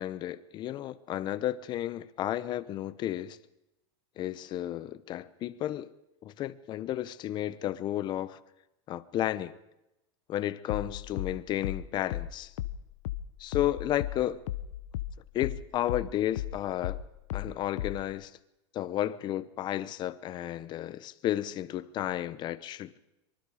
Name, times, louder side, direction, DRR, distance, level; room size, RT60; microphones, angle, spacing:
voice 1, 0.0-3.4 4.2-5.9 6.2-8.4 8.9-9.6 10.3-12.5 13.4-14.4 15.3-17.0 17.3-18.3 18.7-23.0, left 12 dB, 25° left, 0.9 m, -32 dB
sound 1, 10.7-15.6 15.9-18.1, left 12 dB, 75° left, 1.1 m, -35 dB
24.0 x 24.0 x 5.0 m
supercardioid pair, 160°, 16 cm